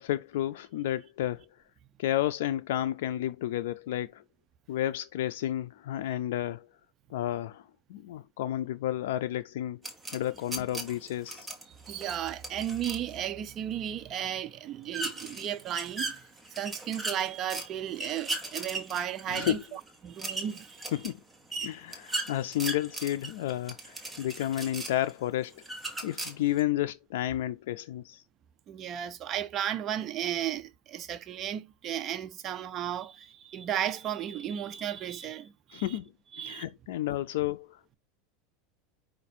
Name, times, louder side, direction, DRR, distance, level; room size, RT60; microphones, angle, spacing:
voice 1, 0.0-1.4 2.0-4.2 4.7-6.7 7.1-7.6 7.9-9.8 10.1-11.5 19.3-19.6 20.9-21.2 21.6-25.6 26.0-28.2 35.7-36.0 36.4-37.9, left 13 dB, 80° left, 0.3 m, -31 dB
sound 1, 9.8-13.1 14.9-17.7 17.9-25.1 25.6-26.6, right 2 dB, 10° right, 1.1 m, -38 dB
voice 2, 11.9-16.2 16.6-20.9 28.7-36.0 36.3-36.7, right 10 dB, 35° right, 0.5 m, -34 dB
5.1 x 2.4 x 4.2 m
supercardioid pair, 135°, 0 cm